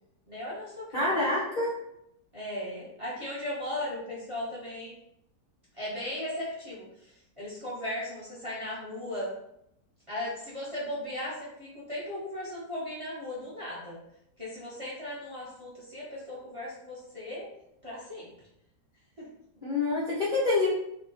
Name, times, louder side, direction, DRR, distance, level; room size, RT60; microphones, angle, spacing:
voice 1, 0.3-1.2 2.3-4.9 5.8-7.1 7.4-9.3 10.1-14.0 14.4-17.5 17.8-18.3, left 1 dB, 25° right, -7 dB, 0.8 m, -37 dB
voice 2, 0.9-1.7 19.6-20.7, left 2 dB, 45° left, -8 dB, 0.6 m, -26 dB
3.5 x 2.2 x 3.8 m, 0.78 s
omnidirectional pair, 1.8 m